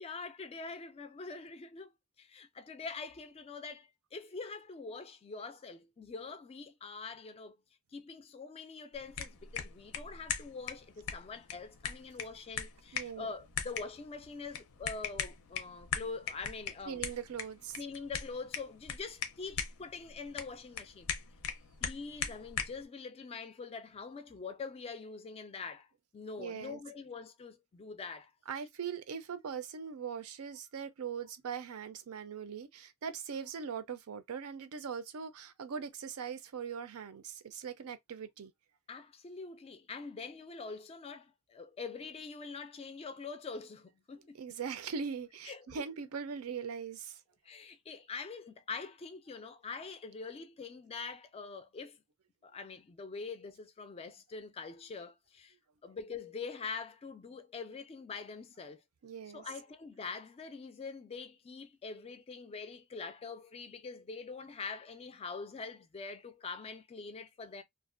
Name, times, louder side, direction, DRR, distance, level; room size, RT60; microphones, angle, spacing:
voice 1, 0.0-1.9 2.2-7.6 7.9-17.0 17.8-21.1 21.8-25.9 26.1-28.3 38.9-44.4 45.5-45.8 47.4-52.0 52.4-55.5 55.8-58.8 59.3-67.6, left 4 dB, 25° left, 0.3 m, -44 dB
sound 1, 8.9-22.8, left 7 dB, 80° left, 0.5 m, -41 dB
voice 2, 12.9-13.3 16.9-17.8 26.4-26.8 28.5-38.5 44.4-47.2 59.0-59.4, right 6 dB, 85° right, 0.5 m, -41 dB
2.4 x 2.1 x 2.4 m
head